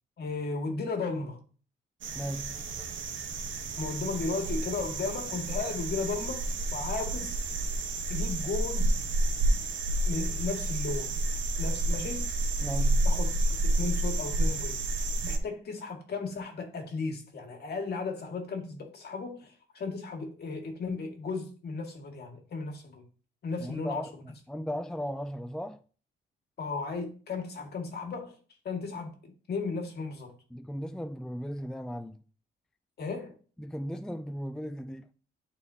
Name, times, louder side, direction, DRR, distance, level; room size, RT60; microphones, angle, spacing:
voice 1, 0.2-1.4 3.8-6.4 6.7-7.4 8.1-8.9 10.1-11.2 11.6-12.3 13.0-13.3 13.6-23.0 23.4-24.2 26.6-28.4 28.6-30.3 33.0-33.3, left 4 dB, 55° left, 2.0 m, -35 dB
sound 1, 2.0-15.4, right 2 dB, 70° right, 1.2 m, -30 dB
voice 2, 2.1-2.6 12.6-13.1 23.6-24.1 24.5-25.8 30.5-32.2 33.6-35.1, equal, 5° left, 0.3 m, -36 dB
11.0 x 4.3 x 2.8 m
cardioid pair, 90°, 20 cm